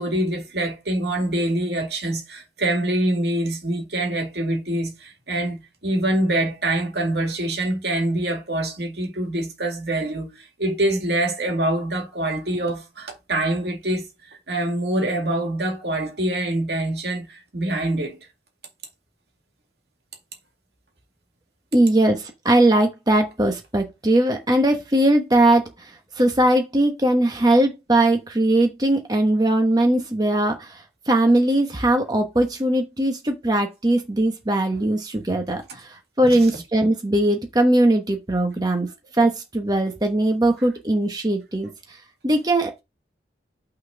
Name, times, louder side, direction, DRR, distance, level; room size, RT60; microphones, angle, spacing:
voice 1, 0.0-14.1 14.5-18.2 35.7-35.8 36.3-36.6, right 1 dB, 70° right, 2.2 m, -25 dB
voice 2, 21.7-25.9 26.2-38.9 39.1-41.7 42.2-42.8, right 1 dB, 20° right, 1.1 m, -20 dB
6.2 x 4.0 x 6.2 m
head